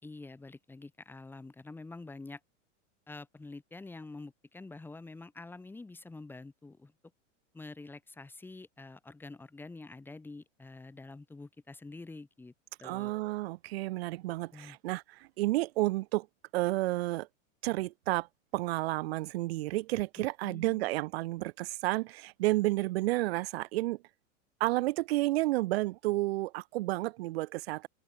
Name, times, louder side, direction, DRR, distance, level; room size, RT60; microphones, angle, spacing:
voice 1, 0.0-2.4 3.1-6.9 7.5-12.5 12.8-13.3 14.5-14.8 20.2-20.8, left 3 dB, 5° left, 4.3 m, -47 dB
voice 2, 12.8-16.3 16.5-17.3 17.6-18.3 18.5-24.0 24.6-27.9, right 18 dB, 50° right, 1.7 m, -31 dB
open air
supercardioid pair, 165°, 38 cm